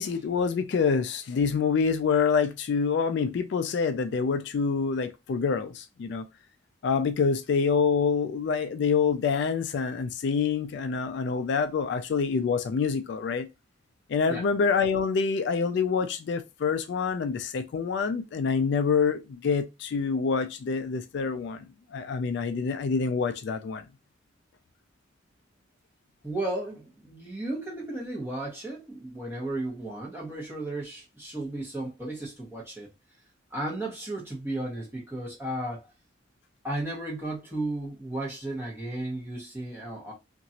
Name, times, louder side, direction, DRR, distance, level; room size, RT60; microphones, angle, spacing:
voice 1, 0.0-6.3 6.8-13.5 14.1-21.7 21.9-23.9, left 5 dB, 65° left, 0.3 m, -26 dB
voice 2, 26.2-32.9 33.5-35.8 36.6-40.1, right 1 dB, 10° right, 1.2 m, -34 dB
2.9 x 2.5 x 2.8 m
head